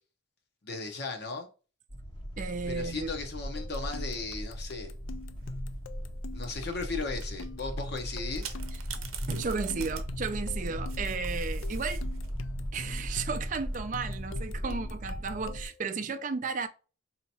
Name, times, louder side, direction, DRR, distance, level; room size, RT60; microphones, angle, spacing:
voice 1, 0.6-1.5 2.7-4.9 6.3-8.6, left 3 dB, 55° left, 0.8 m, -36 dB
sound 1, 1.9-15.7, equal, 25° left, 0.6 m, -37 dB
voice 2, 2.4-3.1 9.3-12.0 12.7-16.7, right 4 dB, 40° right, 0.4 m, -34 dB
sound 2, 3.6-15.9, left 3 dB, 70° left, 0.4 m, -45 dB
sound 3, 5.2-5.6 6.5-6.9 7.2-7.5 8.4-12.4 14.0-14.5, right 9 dB, 85° right, 0.7 m, -45 dB
4.4 x 2.8 x 2.7 m
head